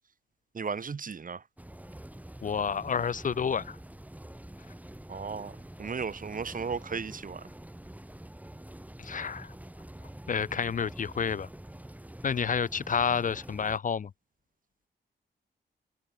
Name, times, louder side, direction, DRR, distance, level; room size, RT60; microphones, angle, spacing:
voice 1, 0.5-1.4 5.1-7.4, right 5 dB, 45° right, 2.1 m, -35 dB
sound 1, 1.6-13.8, right 1 dB, 10° right, 4.8 m, -46 dB
voice 2, 2.4-3.8 9.0-9.5 10.3-11.5 12.2-14.1, left 6 dB, 45° left, 0.5 m, -29 dB
cardioid pair, 80°, 19 cm